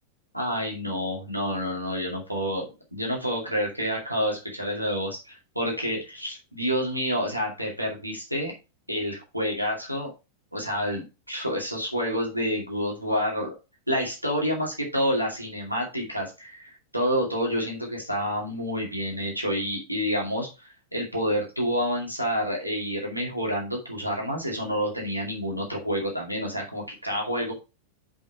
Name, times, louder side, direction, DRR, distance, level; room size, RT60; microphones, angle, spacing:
voice 1, 0.3-8.5 8.9-10.1 10.5-13.5 13.9-27.5, equal, 90° right, -1 dB, 2.4 m, -28 dB
7.1 x 5.3 x 4.6 m, 0.28 s
figure-of-eight pair, 90°, 0 cm